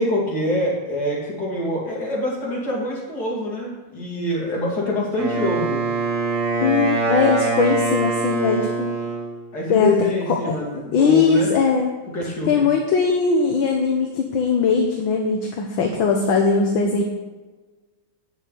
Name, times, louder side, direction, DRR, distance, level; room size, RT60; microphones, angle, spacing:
voice 1, 0.0-5.8 9.5-11.5 12.1-12.7, left 1 dB, 50° left, -4 dB, 3.5 m, -25 dB
Wind instrument woodwind instrument, 5.1-9.3, right 3 dB, 55° right, 3.3 m, -23 dB
voice 2, 6.6-9.0 9.7-9.9 10.5-10.6 10.9-11.9 12.5-17.0, left 5 dB, 70° left, 2 dB, 1.8 m, -20 dB
8.3 x 7.1 x 8.5 m, 1.2 s
omnidirectional pair, 2.3 m